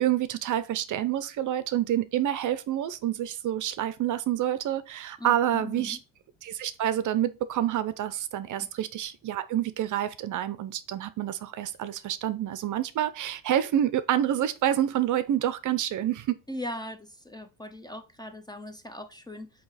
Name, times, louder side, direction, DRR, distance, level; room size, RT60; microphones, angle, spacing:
voice 1, 0.0-6.0 6.4-16.4, right 11 dB, 45° right, 0.6 m, -28 dB
voice 2, 5.2-6.0 8.6-8.7 16.5-19.5, left 1 dB, 10° left, 0.5 m, -39 dB
7.8 x 3.0 x 4.1 m
cardioid pair, 125°, 42 cm